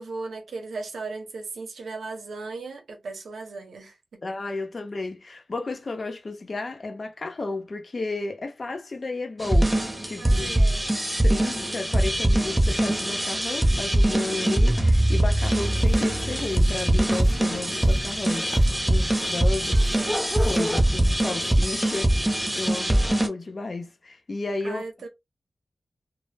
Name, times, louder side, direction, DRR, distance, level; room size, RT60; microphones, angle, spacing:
voice 1, 0.0-4.2 10.2-10.8 19.7-20.3 24.6-25.1, right 3 dB, 90° right, 0.7 m, -37 dB
voice 2, 4.2-10.6 11.2-20.0 20.4-24.8, left 3 dB, 55° left, 0.7 m, -33 dB
sound 1, 9.4-23.3, right 1 dB, 10° right, 0.8 m, -22 dB
sound 2, 15.5-21.1, equal, 10° left, 0.4 m, -35 dB
2.1 x 2.0 x 3.2 m
cardioid pair, 50°, 0 cm